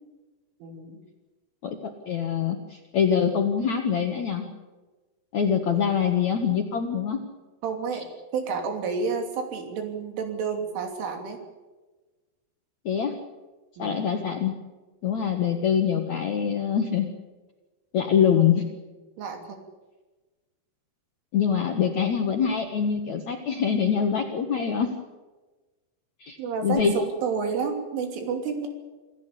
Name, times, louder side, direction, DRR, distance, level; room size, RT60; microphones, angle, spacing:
voice 1, 0.6-1.0 7.6-8.1 8.3-11.4 13.8-14.0 18.4-18.5 19.2-19.6 26.4-28.7, right 5 dB, 85° right, 4 dB, 5.5 m, -30 dB
voice 2, 2.1-4.5 5.3-7.2 12.9-13.2 13.8-14.5 15.0-17.1 17.9-18.7 21.3-24.9 26.2-26.4 26.6-26.9, left 7 dB, 65° left, 4 dB, 1.9 m, -24 dB
27.0 x 16.0 x 8.5 m, 1.2 s
omnidirectional pair, 5.5 m